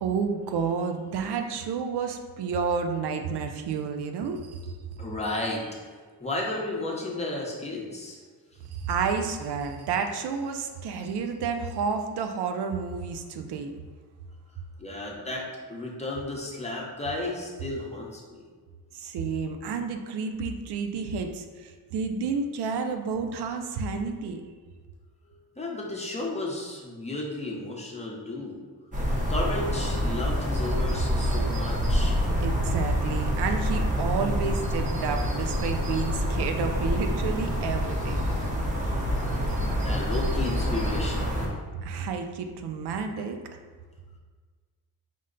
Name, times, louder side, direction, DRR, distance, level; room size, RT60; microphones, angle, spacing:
voice 1, 0.0-4.7 8.7-13.7 18.9-24.4 32.4-38.2 41.7-43.4, right 5 dB, 90° right, 5 dB, 0.5 m, -30 dB
voice 2, 5.0-5.8 6.1-8.2 14.8-18.4 25.6-28.6 29.3-32.2 39.8-41.5, left 2 dB, 15° left, -2 dB, 0.7 m, -33 dB
sound 1, 28.9-41.5, equal, 20° right, 0.7 m, -27 dB
5.1 x 2.1 x 3.8 m, 1.5 s
cardioid pair, 120°, 38 cm